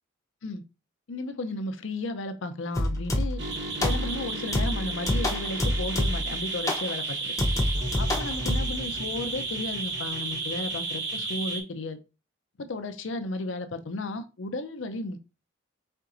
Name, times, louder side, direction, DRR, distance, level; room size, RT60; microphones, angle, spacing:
voice 1, 1.1-3.4 3.8-7.3 8.0-12.0 12.6-15.2, left 2 dB, 75° left, 0.6 m, -34 dB
sound 1, 2.8-3.5 3.8-4.2 4.5-6.4 6.7-6.9 7.4-8.8, left 1 dB, 15° left, 0.6 m, -27 dB
sound 2, 3.4-11.6, right 3 dB, 60° right, 1.0 m, -33 dB
4.5 x 3.7 x 2.5 m
head